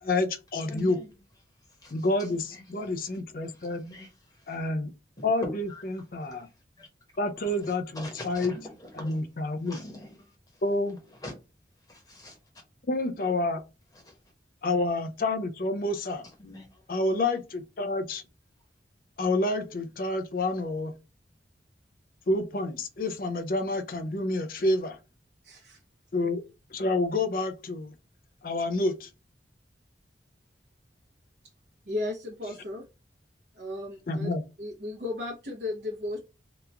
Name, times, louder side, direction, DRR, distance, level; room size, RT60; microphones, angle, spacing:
voice 1, 0.0-1.0 1.9-3.8 4.5-4.9 5.2-6.5 7.2-8.5 8.9-9.8 10.6-11.0 12.9-13.6 14.6-16.3 16.9-18.2 19.2-20.9 22.3-25.0 26.1-26.4 26.7-27.9 28.4-29.1 34.1-34.4, left 2 dB, 50° left, 0.4 m, -28 dB
voice 2, 0.7-1.1 1.8-2.6 3.5-4.6 5.2-5.8 6.3-6.4 6.8-6.9 7.6-9.1 9.7-10.2 11.2-11.3 11.9-12.4 14.0-14.2 16.4-16.8, left 1 dB, 20° left, 1.0 m, -43 dB
voice 3, 25.4-25.8 31.9-32.8 33.6-34.3 34.6-36.2, left 2 dB, 55° right, 0.8 m, -35 dB
2.9 x 2.4 x 3.3 m
head